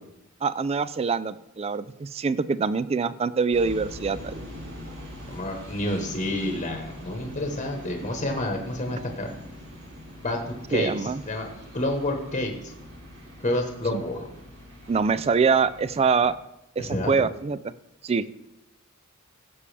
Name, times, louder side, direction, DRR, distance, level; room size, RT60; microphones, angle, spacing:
voice 1, 0.4-4.3 8.9-9.0 10.7-11.2 13.9-14.0 14.9-16.3 16.8-17.6 18.0-18.4, right 5 dB, 30° right, 16 dB, 0.3 m, -24 dB
sound 1, 3.5-16.4, left 1 dB, 85° right, 3.0 m, -43 dB
voice 2, 5.3-9.3 10.2-11.5 11.7-12.7 13.4-14.3 16.8-17.3, left 1 dB, 35° left, 3 dB, 1.1 m, -29 dB
15.0 x 6.9 x 3.3 m, 0.85 s
head